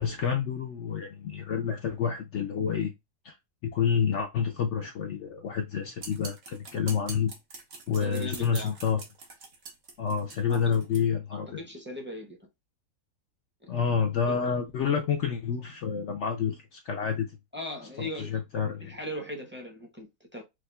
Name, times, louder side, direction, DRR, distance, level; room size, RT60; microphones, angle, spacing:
voice 1, 0.0-2.9 3.2-3.4 3.6-7.3 7.9-9.0 10.0-11.6 13.7-17.3 18.0-19.0, left 6 dB, 65° left, 0.7 m, -29 dB
sound 1, 6.0-11.0, right 3 dB, 60° right, 1.5 m, -44 dB
voice 2, 7.9-8.7 10.5-10.9 11.3-12.4 13.6-13.7 14.3-14.4 17.5-18.4 18.6-20.4, equal, 10° right, 0.6 m, -39 dB
4.8 x 2.3 x 2.2 m
omnidirectional pair, 1.7 m